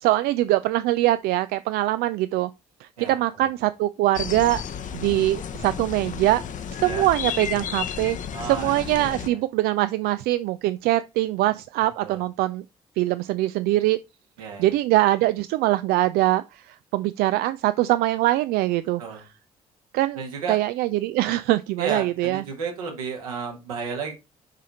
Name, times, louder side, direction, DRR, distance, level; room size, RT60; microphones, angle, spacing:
voice 1, 0.0-2.5 2.8-4.6 4.9-6.4 6.8-8.2 8.4-12.6 13.0-14.0 14.6-19.0 19.9-20.2 20.5-22.4, right 16 dB, 60° right, 0.4 m, -23 dB
voice 2, 3.0-3.5 6.8-7.1 8.3-9.4 12.0-12.2 14.4-14.7 19.0-19.2 20.2-20.6 21.8-24.1, right 5 dB, 80° right, 1.9 m, -33 dB
sound 1, 4.1-9.3, left 8 dB, 45° left, 0.8 m, -32 dB
7.4 x 4.9 x 4.1 m
figure-of-eight pair, 45°, 18 cm